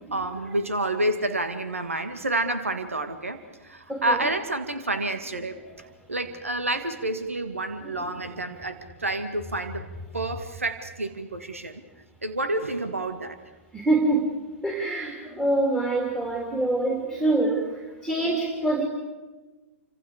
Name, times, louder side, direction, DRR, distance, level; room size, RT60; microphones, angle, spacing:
voice 1, 0.0-9.9 10.1-11.8 12.2-13.4, right 2 dB, 80° right, 9 dB, 2.1 m, -29 dB
voice 2, 3.9-4.3 5.6-5.7 7.8-8.1 8.3-8.5 13.7-14.4 14.6-18.8, right 2 dB, 5° right, 2 dB, 3.6 m, -25 dB
29.5 x 26.0 x 5.1 m, 1.2 s
figure-of-eight pair, 110°, 7 cm